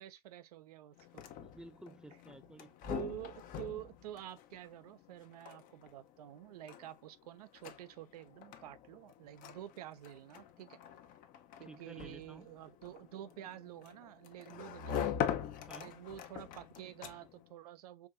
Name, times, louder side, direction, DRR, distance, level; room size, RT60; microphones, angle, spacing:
voice 1, 0.0-1.2 2.9-10.8 11.6-15.1 15.7-18.1, right 12 dB, 70° right, 0.6 m, -49 dB
sound 1, 1.0-17.5, left 9 dB, 40° left, 0.7 m, -44 dB
voice 2, 1.4-2.8 11.6-12.5 15.6-16.0, right 2 dB, 5° right, 0.4 m, -53 dB
4.7 x 2.6 x 2.4 m
hypercardioid pair, 90°, 20 cm